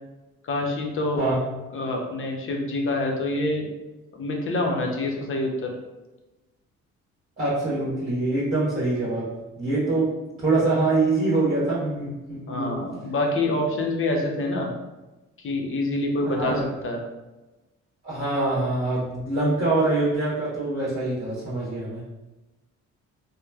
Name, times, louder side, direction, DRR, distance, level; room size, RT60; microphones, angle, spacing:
voice 1, 0.4-1.2 1.7-3.7 4.1-5.7 12.5-14.7 15.4-17.0, left 2 dB, 45° left, 1 dB, 0.6 m, -26 dB
voice 2, 7.4-9.3 9.6-10.1 10.4-12.8 16.2-16.6 18.0-22.0, right 2 dB, 25° right, -10 dB, 1.2 m, -24 dB
2.9 x 2.0 x 2.3 m, 1.1 s
cardioid pair, 90°, 30 cm